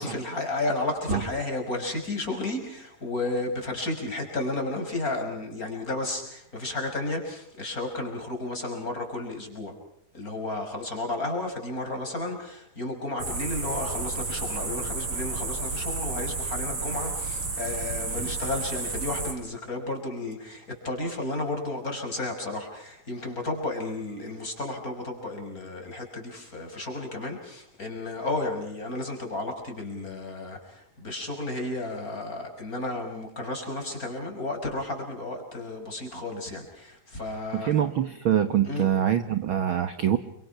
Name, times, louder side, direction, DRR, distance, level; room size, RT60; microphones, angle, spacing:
voice 1, 0.0-9.8 10.1-37.7 38.6-38.9, left 2 dB, 25° left, 4 dB, 6.3 m, -32 dB
sound 1, 13.2-19.3, right 3 dB, 40° right, 5.1 m, -31 dB
voice 2, 37.5-40.2, right 10 dB, 55° right, 10 dB, 1.5 m, -24 dB
29.5 x 26.0 x 5.8 m, 0.72 s
omnidirectional pair, 3.8 m